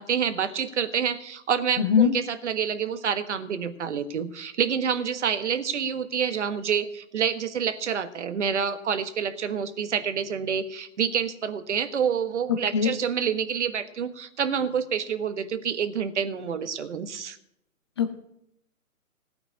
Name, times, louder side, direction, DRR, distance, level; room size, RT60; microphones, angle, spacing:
voice 1, 0.0-17.4, right 7 dB, 55° right, 10 dB, 1.4 m, -28 dB
voice 2, 1.8-2.1 12.7-12.9 18.0-18.2, left 7 dB, 20° left, 8 dB, 0.6 m, -21 dB
17.5 x 5.9 x 9.7 m, 0.80 s
figure-of-eight pair, 140°, 43 cm